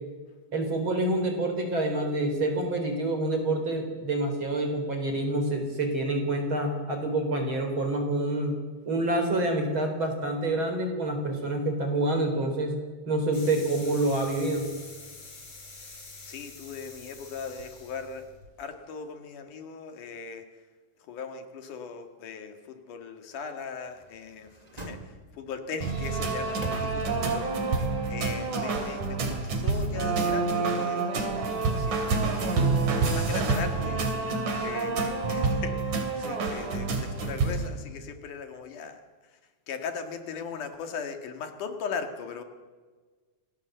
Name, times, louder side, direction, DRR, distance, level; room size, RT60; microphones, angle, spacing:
voice 1, 0.5-8.6 8.9-12.7 13.1-14.7, right 2 dB, 40° right, 5 dB, 4.6 m, -27 dB
sound 1, 13.3-18.5, left 3 dB, 50° left, 5.8 m, -46 dB
voice 2, 16.2-18.3 18.6-20.4 21.0-32.7 33.0-39.4 39.7-42.4, left 6 dB, 80° left, 6 dB, 3.5 m, -39 dB
sound 2, 23.9-25.6 26.1-27.4 27.8-27.9, right 1 dB, 15° right, 1.8 m, -43 dB
sound 3, 25.8-37.7, right 4 dB, 75° right, 4.3 m, -28 dB
26.5 x 19.0 x 8.0 m, 1.4 s
omnidirectional pair, 3.5 m